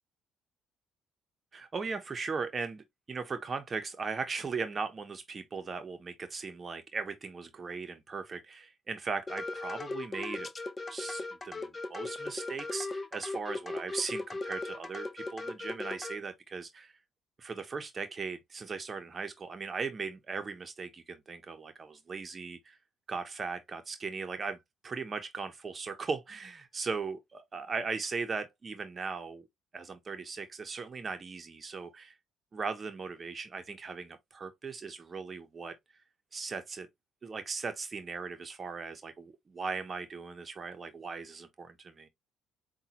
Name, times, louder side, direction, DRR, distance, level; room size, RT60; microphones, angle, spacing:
voice 1, 1.5-10.5 10.9-17.0 17.4-22.8 23.1-24.6 24.8-29.5 29.7-32.2 32.5-35.8 36.3-36.9 37.2-42.1, right 4 dB, 35° right, 0.7 m, -38 dB
sound 1, 9.3-16.2, left 2 dB, 30° left, 0.6 m, -38 dB
5.4 x 2.2 x 2.8 m
supercardioid pair, 65°, 0 cm